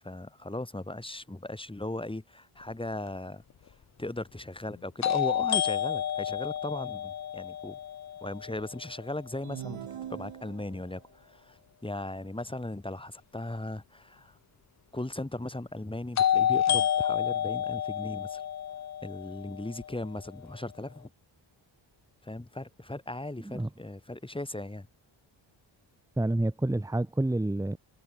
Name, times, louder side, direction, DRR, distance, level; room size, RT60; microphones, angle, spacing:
voice 1, 0.0-3.4 4.0-7.8 8.2-14.4 14.9-18.4 19.0-21.1 22.2-24.9, left 1 dB, 10° left, 3.9 m, -38 dB
sound 1, 3.1-3.2 5.0-8.9 16.2-20.2, left 10 dB, 35° left, 0.4 m, -29 dB
sound 2, 9.4-11.0, right 10 dB, 75° right, 1.8 m, -42 dB
voice 2, 23.4-23.7 26.2-27.8, right 1 dB, 5° right, 1.0 m, -28 dB
wide cardioid pair, 125°, 49 cm